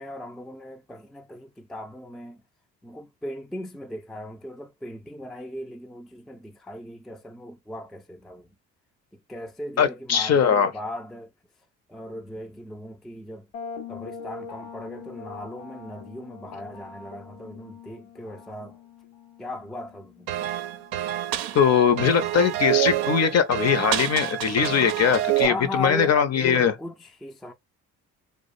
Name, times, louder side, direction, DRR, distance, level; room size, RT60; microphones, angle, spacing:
voice 1, 0.0-2.4 2.8-8.5 9.3-11.3 11.9-13.5 13.9-18.8 19.4-20.3 25.4-27.5, left 1 dB, ahead, 0.4 m, -38 dB
voice 2, 9.8-10.7 21.5-26.7, left 7 dB, 40° left, 0.6 m, -21 dB
sound 1, 13.5-21.2, left 6 dB, 80° left, 0.8 m, -43 dB
sound 2, 20.3-25.5, right 13 dB, 70° right, 0.5 m, -27 dB
2.3 x 2.1 x 2.5 m
hypercardioid pair, 50°, 39 cm